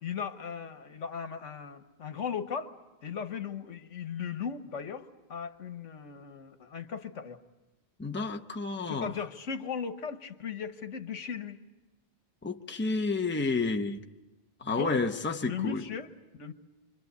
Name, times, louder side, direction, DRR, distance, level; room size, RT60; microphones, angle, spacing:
voice 1, 0.0-2.7 3.0-7.4 8.9-11.6 14.6-15.0 15.4-16.5, left 6 dB, 80° left, 1.6 m, -37 dB
voice 2, 8.0-9.1 12.4-14.0 14.6-15.8, left 3 dB, 10° left, 0.8 m, -30 dB
26.5 x 25.5 x 8.3 m
omnidirectional pair, 1.2 m